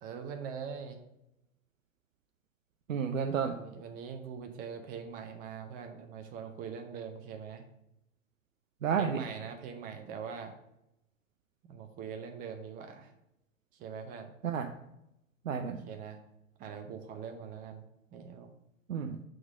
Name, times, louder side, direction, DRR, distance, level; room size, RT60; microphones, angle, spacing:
voice 1, 0.0-1.0 3.5-7.6 9.0-10.6 11.7-13.1 13.8-14.3 15.8-16.2 16.6-17.8 18.1-18.5, right 6 dB, 20° right, 5 dB, 0.6 m, -42 dB
voice 2, 2.9-3.6 8.8-9.3 14.4-14.7 15.4-15.8 18.9-19.2, right 7 dB, 75° right, 5 dB, 0.6 m, -31 dB
6.2 x 3.8 x 6.0 m, 0.86 s
figure-of-eight pair, 100°, 40 cm